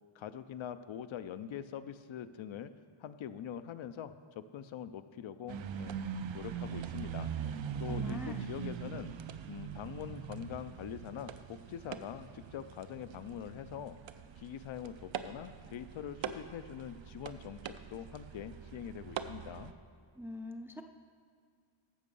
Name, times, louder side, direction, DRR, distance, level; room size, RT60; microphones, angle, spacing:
voice 1, 0.2-2.7 3.0-6.0 6.3-9.1 9.5-14.0 14.4-19.7, left 9 dB, 75° left, 12 dB, 0.6 m, -44 dB
sound 1, 5.5-19.7, right 8 dB, 70° right, 0.6 m, -42 dB
voice 2, 7.9-8.5 20.2-20.8, left 1 dB, 5° right, 5 dB, 0.3 m, -43 dB
15.0 x 6.0 x 5.4 m, 2.1 s
wide cardioid pair, 180°, 48 cm